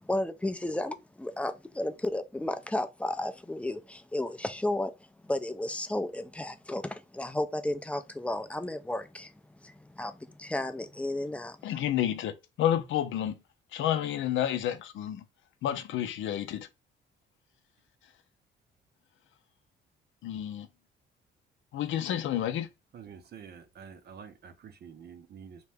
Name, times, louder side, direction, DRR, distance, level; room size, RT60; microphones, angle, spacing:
voice 1, 0.0-11.8, left 1 dB, 5° left, 0.4 m, -33 dB
voice 2, 11.6-13.4 13.7-15.2 15.6-16.7 20.2-20.7 21.7-22.7, left 11 dB, 75° left, 0.5 m, -30 dB
voice 3, 22.9-24.5 24.8-25.6, right 7 dB, 55° right, 0.6 m, -47 dB
2.9 x 2.1 x 3.4 m
cardioid pair, 90°, 20 cm